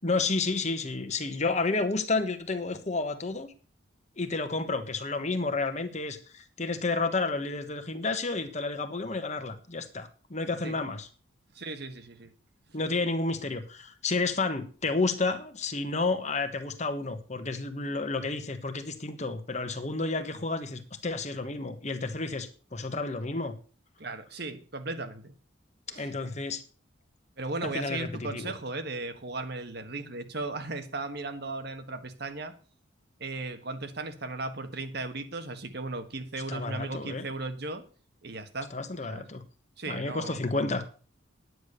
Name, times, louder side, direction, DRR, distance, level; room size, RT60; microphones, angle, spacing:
voice 1, 0.0-3.5 4.2-11.1 12.7-23.5 25.9-26.6 27.7-28.5 36.5-37.3 38.7-39.4 39.9-40.8, left 3 dB, 35° left, 8 dB, 1.4 m, -31 dB
voice 2, 11.5-12.3 24.0-25.3 25.9-26.1 27.4-32.5 33.2-37.8 38.2-38.7 39.1-39.3 39.8-40.4, right 3 dB, 55° right, 8 dB, 1.5 m, -36 dB
10.5 x 9.5 x 6.7 m, 0.39 s
head